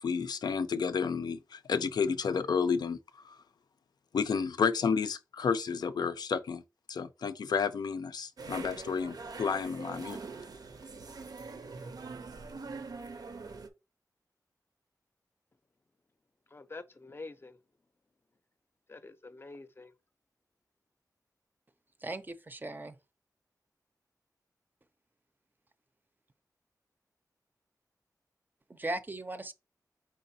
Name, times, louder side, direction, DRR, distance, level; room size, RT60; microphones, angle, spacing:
voice 1, 0.0-3.0 3.2-3.4 4.1-6.6 6.9-10.2, left 6 dB, 90° left, 0.4 m, -31 dB
sound 1, 8.4-13.7, right 4 dB, 70° right, 0.6 m, -43 dB
voice 2, 16.5-17.6 18.9-19.9, left 3 dB, 35° left, 0.5 m, -46 dB
voice 3, 22.0-22.9 28.7-29.5, right 2 dB, 30° right, 0.5 m, -38 dB
4.6 x 3.8 x 2.7 m
wide cardioid pair, 85°, 7 cm